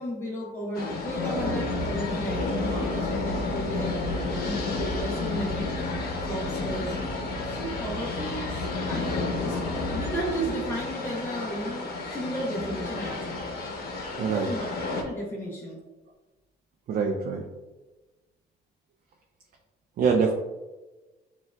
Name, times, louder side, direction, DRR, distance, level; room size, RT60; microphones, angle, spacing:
voice 1, 0.0-5.8 6.2-7.0 7.4-9.6 9.9-13.5 14.2-15.8 20.1-20.3, equal, 15° left, -5 dB, 0.7 m, -34 dB
sound 1, 0.7-15.0, left 2 dB, 65° left, 0.9 m, -31 dB
voice 2, 14.2-14.5 16.9-17.4 20.0-20.3, right 5 dB, 55° right, 2 dB, 0.5 m, -24 dB
7.1 x 2.4 x 2.2 m, 1.2 s
cardioid pair, 110°, 17 cm